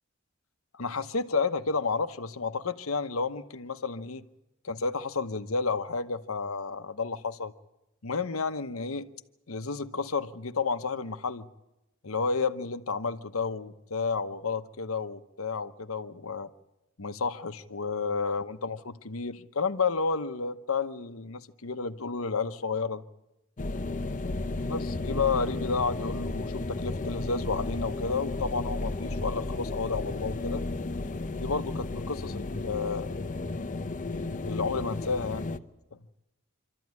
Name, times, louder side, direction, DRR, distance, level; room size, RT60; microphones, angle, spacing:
voice 1, 0.7-4.2 4.6-7.5 8.0-9.1 9.5-11.5 12.0-16.5 17.0-23.0 24.7-30.6 31.4-33.2 34.1-35.5 35.9-36.0, left 4 dB, 80° left, 1.0 m, -31 dB
sound 1, 23.6-35.6, left 2 dB, 40° left, 0.8 m, -33 dB
26.0 x 13.5 x 9.5 m
head